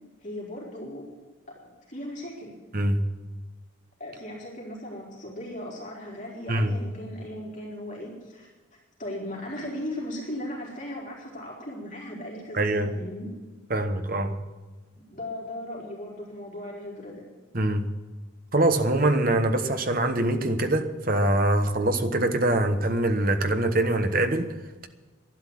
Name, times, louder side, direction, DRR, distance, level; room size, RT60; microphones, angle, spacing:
voice 1, 0.2-1.1 1.5-2.5 4.0-8.5 9.0-13.3 14.9-17.2, left 1 dB, 40° left, 4.2 m, -37 dB
voice 2, 12.5-12.9 13.7-14.4 17.5-17.9 18.5-24.5, right 1 dB, 45° right, 1.2 m, -24 dB
12.0 x 10.5 x 8.6 m
head